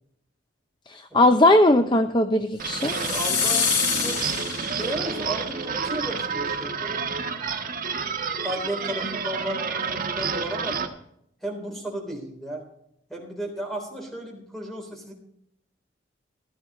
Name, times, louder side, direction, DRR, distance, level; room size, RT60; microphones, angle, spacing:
voice 1, 0.9-2.9, left 1 dB, 25° left, 8 dB, 0.5 m, -19 dB
sound 1, 2.6-10.9, right 5 dB, 45° right, 1.4 m, -29 dB
sound 2, 2.7-5.2, left 7 dB, 80° left, 1.8 m, -27 dB
voice 2, 2.9-4.4 4.8-7.0 8.4-10.8 11.4-12.6 13.1-15.1, right 1 dB, ahead, 1 dB, 3.7 m, -34 dB
16.0 x 12.5 x 3.2 m, 0.72 s
head